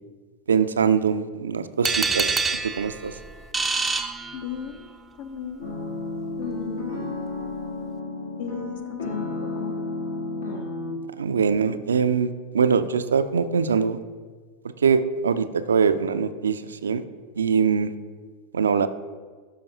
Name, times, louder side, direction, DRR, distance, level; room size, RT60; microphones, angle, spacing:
voice 1, 0.5-3.2 11.2-14.0 14.8-17.0 17.4-17.9 18.5-18.9, right 6 dB, 70° right, 11 dB, 0.4 m, -23 dB
sound 1, 1.8-4.9, right 4 dB, 10° right, 0.4 m, -26 dB
voice 2, 4.3-4.9 5.2-5.7 6.4-7.0 8.4-9.8, left 7 dB, 50° left, 9 dB, 0.7 m, -36 dB
sound 2, 5.6-10.9, left 3 dB, 65° left, 1.6 m, -32 dB
12.5 x 5.1 x 2.7 m, 1.5 s
figure-of-eight pair, 90°, 0 cm